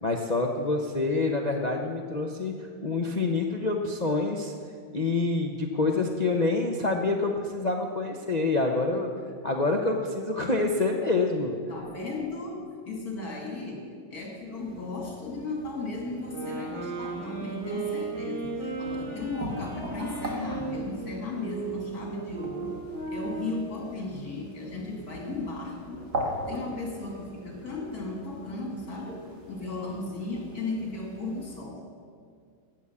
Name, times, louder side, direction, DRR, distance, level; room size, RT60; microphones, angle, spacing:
voice 1, 0.0-4.5 4.9-9.1 9.4-11.6, left 3 dB, 70° left, 2 dB, 0.4 m, -27 dB
voice 2, 11.7-22.8 23.1-26.1 26.5-31.8, left 3 dB, 45° left, -1 dB, 3.0 m, -36 dB
sound 1, 14.5-31.6, right 1 dB, 50° right, 2.4 m, -41 dB
sound 2, 16.2-23.8, right 3 dB, 75° right, 5.1 m, -36 dB
15.0 x 9.1 x 7.2 m, 2.1 s
omnidirectional pair, 2.2 m